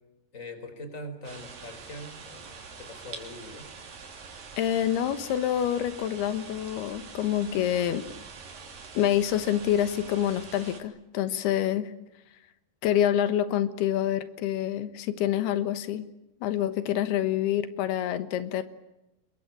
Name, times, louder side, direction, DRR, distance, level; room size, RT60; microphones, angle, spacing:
voice 1, 0.3-3.7, left 1 dB, 20° left, 8 dB, 4.5 m, -42 dB
sound 1, 1.2-10.8, right 5 dB, 60° right, 4.9 m, -45 dB
voice 2, 4.6-8.1 8.9-11.9 12.8-16.1 16.4-18.6, left 11 dB, 90° left, 12 dB, 3.3 m, -27 dB
27.5 x 22.5 x 8.9 m, 0.95 s
omnidirectional pair, 4.4 m